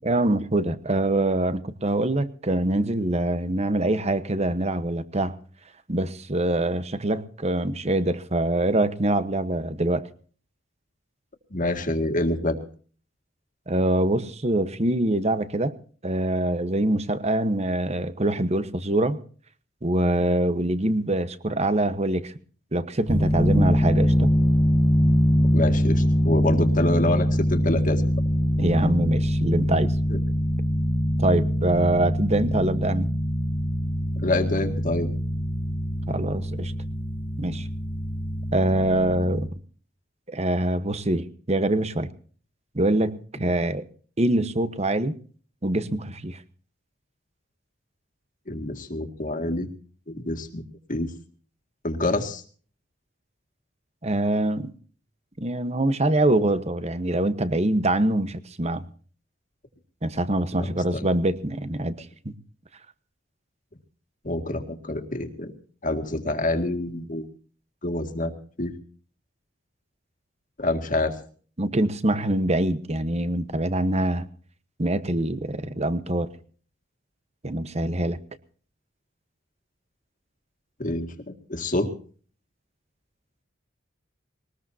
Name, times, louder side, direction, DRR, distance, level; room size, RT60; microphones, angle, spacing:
voice 1, 0.0-5.3 5.9-10.1 13.7-15.7 16.0-19.2 19.8-22.3 22.7-24.3 28.6-29.9 31.2-33.1 36.1-36.7 37.4-37.7 38.5-39.5 40.3-42.1 42.7-43.8 44.2-45.2 45.6-46.4 54.0-54.7 55.4-58.8 60.0-61.9 62.2-62.3 71.6-74.3 74.8-76.3 77.4-78.2, right 1 dB, 35° right, 13 dB, 1.1 m, -24 dB
voice 2, 11.5-12.6 25.5-28.1 30.1-30.2 34.2-35.1 48.5-49.7 50.1-50.6 50.9-51.1 51.8-52.4 60.6-61.1 64.2-65.5 65.8-67.3 67.8-68.3 68.6-68.7 70.6-71.2 80.8-81.9, left 2 dB, 45° left, 7 dB, 2.1 m, -27 dB
sound 1, 23.1-39.5, equal, 10° left, 1.1 m, -23 dB
21.5 x 20.0 x 2.8 m, 0.44 s
head